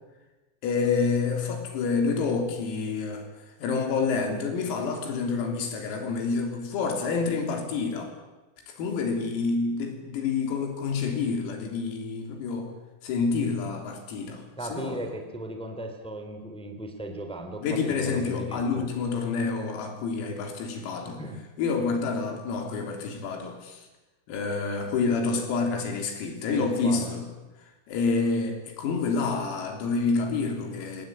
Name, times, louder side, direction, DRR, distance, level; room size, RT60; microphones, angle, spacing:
voice 1, 0.6-3.3 3.6-8.1 8.7-12.7 13.0-15.0 17.6-21.2 21.6-23.8 24.3-27.3 27.9-31.1, left 4 dB, 90° left, 4 dB, 6.2 m, -28 dB
voice 2, 14.6-18.9 21.0-21.4 26.5-27.1, right 1 dB, ahead, 5 dB, 2.0 m, -37 dB
27.0 x 19.0 x 8.9 m, 1.1 s
omnidirectional pair, 6.0 m